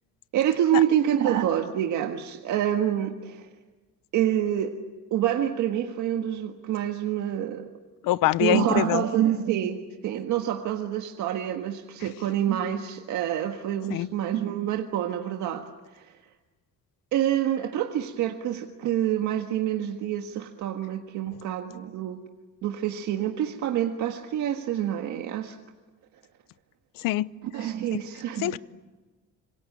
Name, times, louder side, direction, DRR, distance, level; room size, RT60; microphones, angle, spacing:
voice 1, 0.3-3.5 4.1-4.8 5.1-7.7 8.4-15.6 15.9-16.2 17.1-22.2 22.6-25.6 27.4-28.6, right 11 dB, 60° right, 4 dB, 1.6 m, -27 dB
voice 2, 8.0-9.0 13.9-14.1 27.0-27.3 27.9-28.0 28.4-28.6, left 15 dB, 80° left, 18 dB, 0.8 m, -24 dB
26.5 x 25.0 x 8.7 m, 1.3 s
cardioid pair, 175°, 33 cm